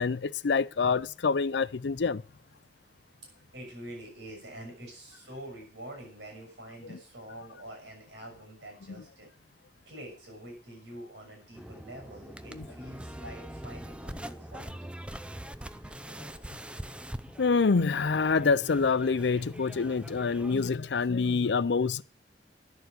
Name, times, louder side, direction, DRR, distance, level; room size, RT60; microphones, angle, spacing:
voice 1, 0.0-2.2 6.9-7.0 12.5-12.7 17.4-22.0, left 4 dB, 70° left, 0.5 m, -26 dB
voice 2, 3.5-9.3 9.9-14.8, right 1 dB, 80° right, 6.7 m, -46 dB
sound 1, 11.5-20.7, right 1 dB, 5° right, 0.6 m, -43 dB
10.5 x 6.9 x 9.3 m
head